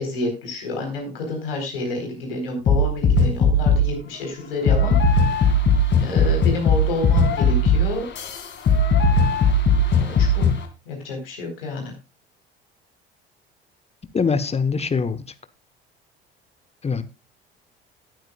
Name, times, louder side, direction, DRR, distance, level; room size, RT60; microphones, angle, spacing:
voice 1, 0.0-5.6 6.0-8.1 10.0-10.5 10.9-11.9, left 2 dB, 70° left, 4.4 m, -29 dB
sound 1, 2.7-4.0 4.7-10.6, left 2 dB, 40° left, 2.5 m, -18 dB
voice 2, 14.1-15.2 16.8-17.0, left 5 dB, 20° left, 1.1 m, -22 dB
18.0 x 9.2 x 2.4 m
figure-of-eight pair, 60°, 30 cm